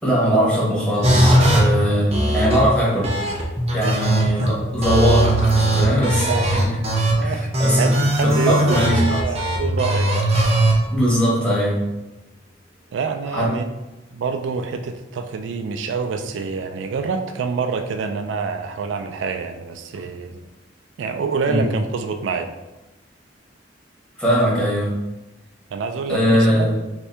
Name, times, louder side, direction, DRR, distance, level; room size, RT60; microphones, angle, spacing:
voice 1, 0.0-3.1 3.7-6.7 7.2-7.9 8.2-9.2 10.9-11.8 13.3-13.5 19.9-20.0 21.5-21.6 24.2-25.0 26.1-26.7, equal, 5° left, -6 dB, 1.0 m, -20 dB
sound 1, 1.0-1.6 2.1-2.6 3.0-4.5 4.8-7.1 7.5-10.7, right 1 dB, 35° right, 0.6 m, -19 dB
voice 2, 7.2-7.5 7.8-8.8 9.2-10.3 12.9-13.7 14.1-20.4 21.0-22.5 25.7-26.7, right 5 dB, 90° right, 6 dB, 0.3 m, -26 dB
sound 2, 12.2-12.6, left 2 dB, 40° left, 1.3 m, -39 dB
3.3 x 2.7 x 3.3 m, 1.0 s
head